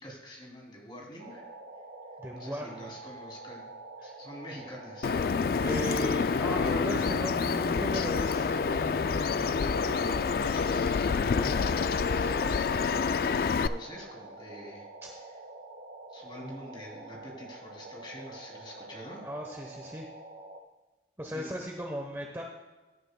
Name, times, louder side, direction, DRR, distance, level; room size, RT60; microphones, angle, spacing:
voice 1, 0.0-1.5 2.3-3.7 4.0-5.2 8.9-15.3 16.1-19.3 21.3-21.5, equal, 25° left, -1 dB, 2.9 m, -46 dB
sound 1, 1.2-20.6, right 2 dB, 70° right, 1.2 m, -46 dB
voice 2, 2.2-2.9 4.0-4.1 5.6-8.5 19.2-20.1 21.2-22.4, equal, 15° right, 1 dB, 1.0 m, -37 dB
Bird vocalization bird call bird song, 5.0-13.7, left 5 dB, 55° left, 0.3 m, -27 dB
Telephone, 6.7-9.9, equal, 30° right, 2.8 m, -42 dB
17.0 x 10.0 x 2.3 m, 1.2 s
head